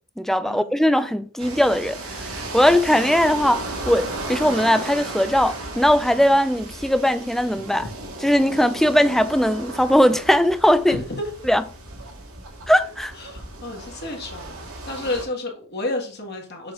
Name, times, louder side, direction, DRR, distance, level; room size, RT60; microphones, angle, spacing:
voice 1, 0.2-7.8 8.2-11.0 11.5-11.6 12.7-13.1, equal, ahead, 0.4 m, -19 dB
sound 1, 1.4-15.2, right 2 dB, 90° right, 1.7 m, -35 dB
voice 2, 10.9-11.3 13.1-16.7, left 2 dB, 50° left, 2.0 m, -31 dB
7.1 x 4.0 x 4.9 m
head